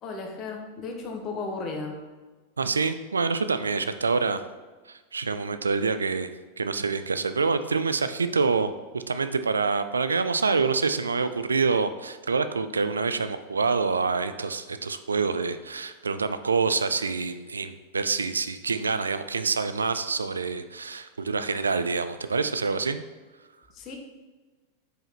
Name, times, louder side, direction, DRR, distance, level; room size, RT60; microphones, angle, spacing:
voice 1, 0.0-2.0 23.7-24.0, left 3 dB, 35° left, 2 dB, 1.1 m, -34 dB
voice 2, 2.6-4.4 4.9-6.3 6.6-23.0, right 4 dB, 75° right, 11 dB, 0.3 m, -26 dB
4.9 x 4.9 x 4.3 m, 1.3 s
figure-of-eight pair, 90°, 0 cm